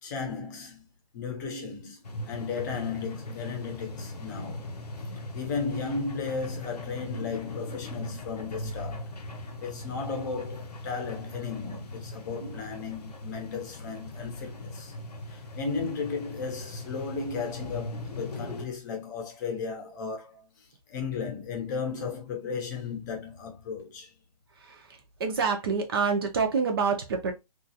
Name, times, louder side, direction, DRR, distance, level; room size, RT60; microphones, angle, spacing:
voice 1, 0.0-0.9 1.1-4.7 5.0-5.1 5.3-9.1 9.6-14.9 15.3-24.1, left 5 dB, 30° left, 0.8 m, -35 dB
sound 1, 2.0-18.7, left 1 dB, 90° left, 0.8 m, -39 dB
voice 2, 25.2-27.3, right 5 dB, 40° right, 0.6 m, -27 dB
2.9 x 2.4 x 2.7 m
hypercardioid pair, 150°, 20 cm